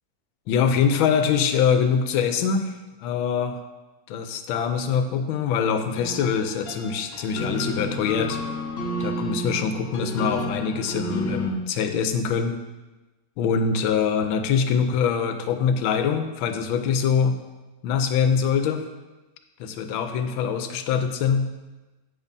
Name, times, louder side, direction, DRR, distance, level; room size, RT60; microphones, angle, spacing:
voice 1, 0.5-2.7 3.0-3.6 4.1-8.4 9.0-12.5 13.4-17.4 17.8-18.9 19.6-21.5, left 6 dB, 85° left, 8 dB, 1.4 m, -23 dB
sound 1, 5.9-11.5, equal, 45° left, 0.8 m, -31 dB
8.5 x 7.1 x 2.7 m, 1.1 s
omnidirectional pair, 2.2 m